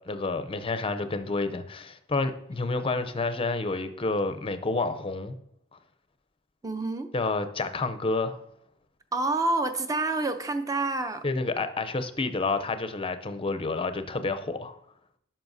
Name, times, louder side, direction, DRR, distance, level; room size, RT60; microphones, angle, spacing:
voice 1, 0.1-5.4 7.1-8.4 11.2-14.7, left 3 dB, 25° left, 0.5 m, -29 dB
voice 2, 6.6-7.1 9.1-11.3, right 2 dB, 15° right, 0.5 m, -28 dB
12.0 x 5.7 x 2.7 m
head